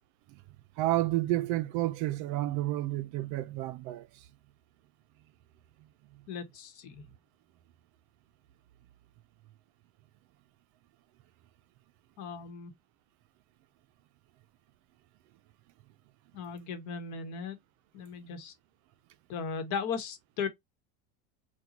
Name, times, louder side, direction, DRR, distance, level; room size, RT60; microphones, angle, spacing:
voice 1, 0.8-4.3, right 15 dB, 55° right, 0.5 m, -30 dB
voice 2, 6.3-7.0 12.2-12.7 16.3-17.6 17.9-18.5 19.3-20.5, left 6 dB, 50° left, 1.0 m, -37 dB
3.9 x 2.3 x 2.8 m
supercardioid pair, 135°, 36 cm